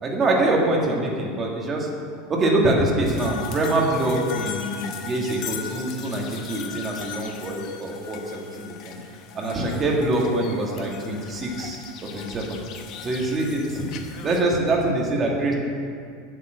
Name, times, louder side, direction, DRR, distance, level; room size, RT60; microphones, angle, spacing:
voice 1, 0.0-1.9 2.3-9.0 9.3-12.6 13.0-13.9 14.2-15.5, right 2 dB, 20° right, -1 dB, 1.7 m, -24 dB
sound 1, 3.1-14.4, left 8 dB, 40° left, 0.8 m, -38 dB
8.0 x 7.4 x 7.5 m, 2.3 s
supercardioid pair, 165°, 0 cm